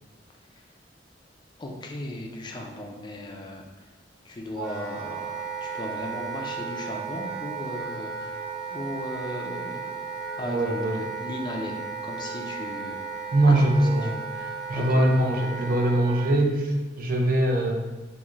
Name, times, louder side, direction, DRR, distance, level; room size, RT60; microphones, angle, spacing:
voice 1, 1.6-3.9 4.2-8.4 8.7-10.0 10.4-15.1, left 1 dB, 25° left, 1 dB, 0.3 m, -37 dB
Wind instrument woodwind instrument, 4.5-16.4, right 5 dB, ahead, 0.8 m, -35 dB
voice 2, 10.4-11.0 13.3-14.2 14.7-17.7, right 1 dB, 50° right, 1 dB, 0.4 m, -22 dB
3.0 x 2.5 x 2.4 m, 1.2 s
head